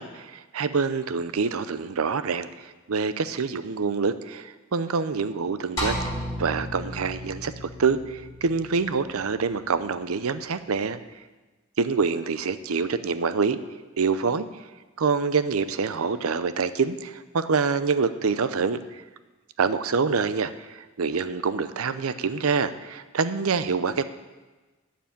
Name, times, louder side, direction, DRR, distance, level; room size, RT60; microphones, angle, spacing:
voice 1, 0.0-6.1 6.4-11.0 11.8-13.6 14.0-14.5 15.0-19.0 19.6-24.0, right 5 dB, 85° right, 13 dB, 0.6 m, -26 dB
sound 1, 5.8-10.2, equal, 15° left, 3.6 m, -34 dB
11.5 x 6.0 x 8.6 m, 1.2 s
head